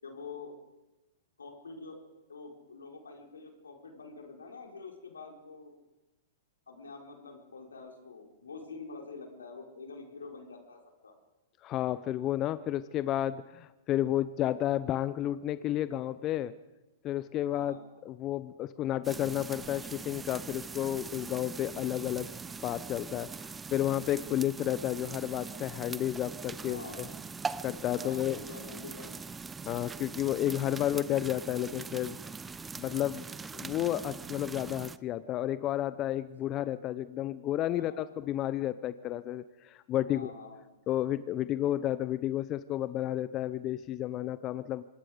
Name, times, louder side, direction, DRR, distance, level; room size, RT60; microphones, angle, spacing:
voice 1, 0.0-0.6 1.4-5.7 6.7-11.1 17.5-17.8 26.5-27.1 27.9-29.2 37.7-38.0 40.0-40.6, left 4 dB, 85° left, 2 dB, 4.6 m, -46 dB
voice 2, 11.6-16.5 17.0-17.8 18.0-22.3 22.6-27.1 27.6-28.4 29.7-32.2 32.8-33.3 33.5-40.3 40.9-44.8, left 12 dB, 35° left, 15 dB, 0.7 m, -31 dB
sound 1, 19.0-35.0, right 5 dB, 15° right, 0.7 m, -42 dB
25.5 x 20.5 x 5.1 m, 1.0 s
hypercardioid pair, 115°, 0 cm